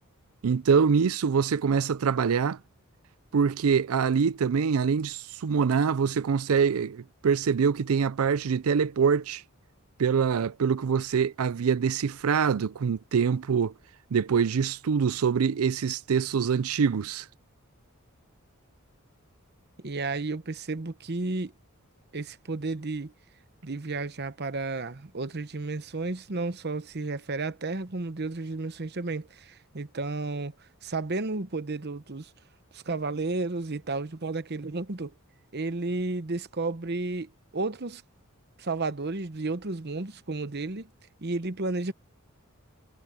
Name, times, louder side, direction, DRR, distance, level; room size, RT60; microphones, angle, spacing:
voice 1, 0.4-2.6 3.3-9.4 10.0-13.7 14.1-17.3, right 6 dB, 80° right, 0.5 m, -24 dB
voice 2, 19.8-21.5 22.1-23.1 23.6-30.5 30.8-32.3 32.7-35.1 35.5-38.0 38.6-40.9 41.2-41.9, right 3 dB, 50° right, 1.0 m, -32 dB
head